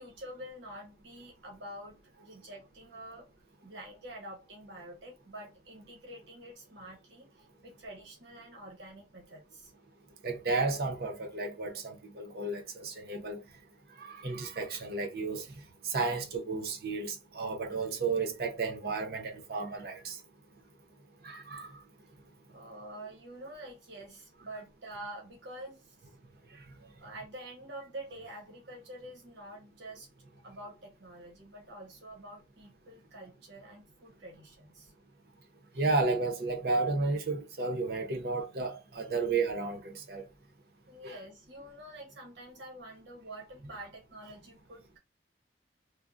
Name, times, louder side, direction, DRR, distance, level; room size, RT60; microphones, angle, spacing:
voice 1, 0.0-3.3 3.6-9.7 22.5-26.0 27.0-30.1 30.4-34.9 40.9-45.0, right 1 dB, 85° right, 1.0 m, -47 dB
voice 2, 10.2-13.4 14.0-15.5 15.8-20.2 21.2-21.7 35.8-40.2 41.0-41.1, right 3 dB, 55° right, 0.6 m, -32 dB
3.3 x 2.0 x 2.4 m
head